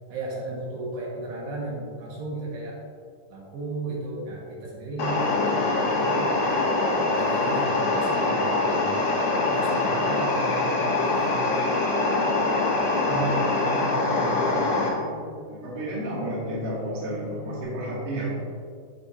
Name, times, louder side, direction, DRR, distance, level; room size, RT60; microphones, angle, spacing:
voice 1, 0.1-2.8 3.3-6.5 6.8-11.5, right 2 dB, 80° right, -4 dB, 3.7 m, -35 dB
sound 1, 5.0-14.9, left 2 dB, 60° left, 1.9 m, -24 dB
sound 2, 12.6-17.6, equal, 85° left, 3.0 m, -42 dB
voice 2, 13.0-15.1 15.5-18.3, right 1 dB, 45° right, -7 dB, 2.8 m, -32 dB
14.0 x 6.2 x 2.7 m, 2.2 s
omnidirectional pair, 4.7 m